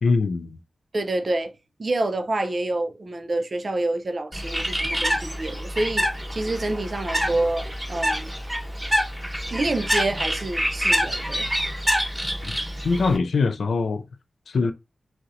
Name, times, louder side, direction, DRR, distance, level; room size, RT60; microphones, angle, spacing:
voice 1, 0.0-0.6 12.4-12.5 12.8-14.0 14.5-14.7, left 4 dB, 75° left, 0.3 m, -22 dB
voice 2, 0.9-1.5 1.8-8.3 9.5-11.5, right 2 dB, 50° right, 0.4 m, -27 dB
Bird, 4.3-13.2, equal, 10° right, 1.0 m, -26 dB
2.7 x 2.0 x 2.4 m
cardioid pair, 40°, 0 cm